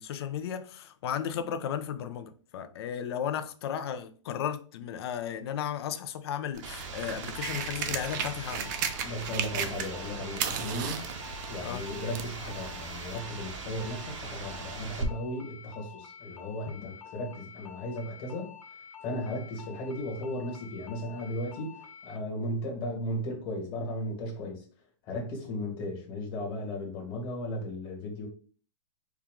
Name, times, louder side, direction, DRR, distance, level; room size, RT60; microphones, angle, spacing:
voice 1, 0.0-8.7 11.6-11.8, left 9 dB, 50° left, 0.5 m, -34 dB
sound 1, 6.5-10.1 10.3-12.4 13.2-13.3, right 8 dB, 40° right, 0.5 m, -34 dB
sound 2, 6.6-15.0, right 4 dB, 70° right, 0.9 m, -40 dB
sound 3, 7.4-22.2, left 7 dB, 85° left, 1.0 m, -49 dB
voice 2, 9.0-11.0 11.5-18.5 19.0-21.8 22.0-24.6 25.0-28.3, left 1 dB, 30° left, 1.5 m, -36 dB
4.5 x 2.4 x 3.6 m
hypercardioid pair, 150°, 16 cm